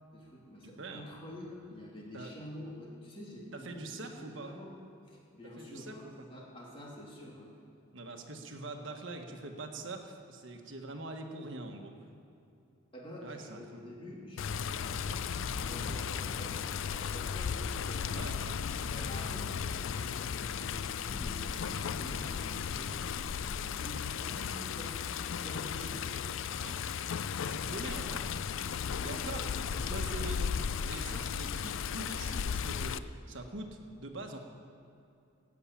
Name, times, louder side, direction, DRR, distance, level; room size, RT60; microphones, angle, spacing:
voice 1, 0.1-4.7 5.1-7.5 12.9-18.2 18.7-23.1 23.4-26.1 27.5-28.3 28.9-30.5, left 1 dB, 25° left, -3 dB, 2.8 m, -48 dB
voice 2, 0.6-1.1 2.1-2.3 3.5-4.6 5.6-6.3 7.9-11.9 13.2-13.8 18.1-18.6 25.8-26.1 26.6-26.8 27.4-28.2 29.0-29.5 29.9-30.4 30.9-34.4, right 2 dB, 65° right, 4 dB, 1.4 m, -44 dB
Water, 14.4-33.0, left 7 dB, 65° left, 0.4 m, -35 dB
sound 1, 14.5-27.7, equal, 40° right, 4.4 m, -54 dB
13.5 x 8.7 x 8.5 m, 2.6 s
head